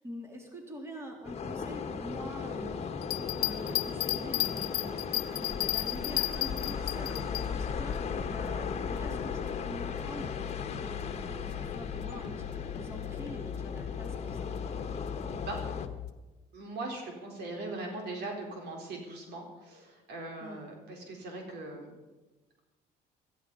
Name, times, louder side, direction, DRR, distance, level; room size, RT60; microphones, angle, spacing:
voice 1, 0.0-14.5 20.4-20.6, equal, 15° right, 1 dB, 3.4 m, -45 dB
sound 1, 1.2-15.9, left 5 dB, 40° left, 1.5 m, -37 dB
Bell, 3.0-7.4 7.9-8.0, left 17 dB, 70° left, 0.9 m, -32 dB
sound 2, 6.5-16.1, left 9 dB, 90° left, 1.0 m, -40 dB
voice 2, 16.5-21.9, right 2 dB, 80° right, 2 dB, 4.2 m, -40 dB
16.5 x 14.0 x 5.4 m, 1.2 s
cardioid pair, 110°, 17 cm